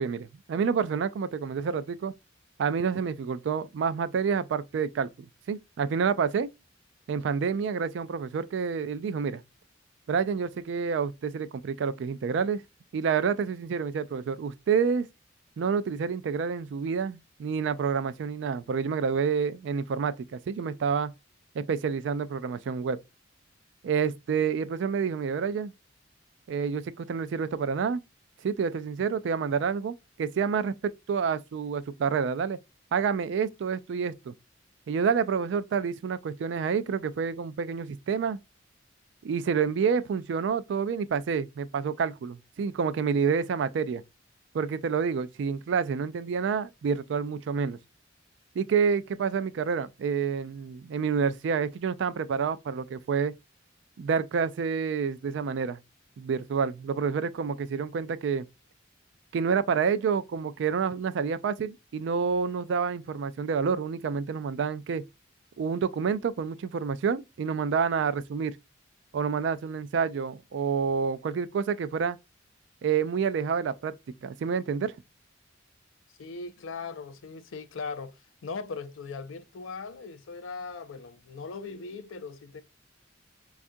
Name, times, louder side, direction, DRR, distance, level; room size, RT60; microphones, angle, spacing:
voice 1, 0.0-2.1 2.6-6.5 7.1-9.4 10.1-12.6 12.9-15.1 15.6-21.1 21.5-23.0 23.8-25.7 26.5-28.0 28.4-32.6 32.9-34.3 34.9-38.4 39.2-44.0 44.5-47.8 48.6-53.3 54.0-55.8 56.2-58.5 59.3-65.0 65.6-68.6 69.1-72.2 72.8-73.9 74.2-74.9, right 6 dB, 65° right, 0.3 m, -28 dB
voice 2, 76.2-82.6, left 4 dB, 90° left, 0.5 m, -39 dB
4.4 x 2.4 x 2.5 m
head